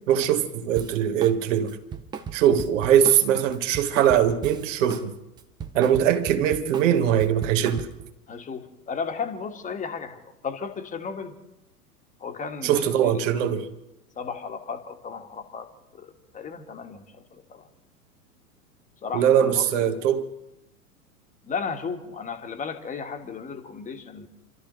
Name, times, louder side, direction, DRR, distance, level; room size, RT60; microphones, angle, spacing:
voice 1, 0.1-1.8 2.3-5.1 5.7-7.9 12.6-13.7 19.1-20.3, right 9 dB, 50° right, 1.5 m, -21 dB
Drum kit, 0.8-1.4 1.7-5.1 5.4-8.1, right 7 dB, 10° right, 0.4 m, -37 dB
voice 2, 8.3-11.4 12.2-13.2 14.1-17.6 19.0-19.7 21.4-24.3, left 5 dB, 15° left, 1.5 m, -35 dB
29.0 x 13.0 x 3.1 m
figure-of-eight pair, 95°, 47 cm